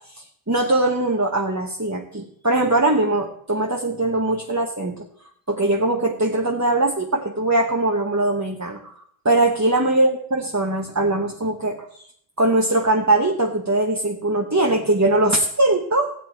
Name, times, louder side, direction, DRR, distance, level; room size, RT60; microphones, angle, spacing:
voice 1, 0.1-5.1 5.5-8.9 9.2-12.0 12.4-16.1, right 2 dB, 15° right, 1 dB, 0.9 m, -21 dB
16.5 x 8.9 x 4.5 m, 0.65 s
omnidirectional pair, 1.1 m